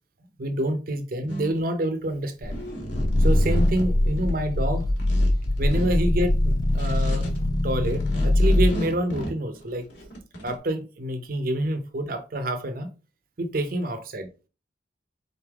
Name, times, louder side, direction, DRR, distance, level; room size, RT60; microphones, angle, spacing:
voice 1, 0.4-2.6 3.2-4.9 5.6-7.3 7.6-9.9 10.4-12.9 13.4-14.3, right 1 dB, 50° right, 0.7 m, -27 dB
sound 1, 1.3-2.1 2.4-4.4 4.7-5.9 6.3-7.4 7.8-10.6, equal, 75° left, 1.5 m, -34 dB
Growling, 2.4-8.8, left 1 dB, 20° left, 0.3 m, -22 dB
4.0 x 3.4 x 3.5 m
head